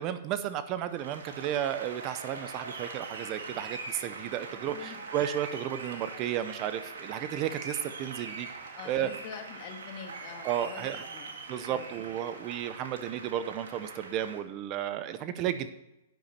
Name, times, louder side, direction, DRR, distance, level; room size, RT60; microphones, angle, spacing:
voice 1, 0.0-8.5 8.8-9.1 10.4-11.1 11.5-15.7, right 10 dB, 35° right, 11 dB, 0.6 m, -33 dB
Applause, 0.8-14.4, right 4 dB, 80° right, 2.0 m, -42 dB
voice 2, 8.7-11.3 11.7-11.9, left 7 dB, 45° left, 4 dB, 1.8 m, -45 dB
9.3 x 7.0 x 4.2 m, 0.92 s
hypercardioid pair, 140°, 0 cm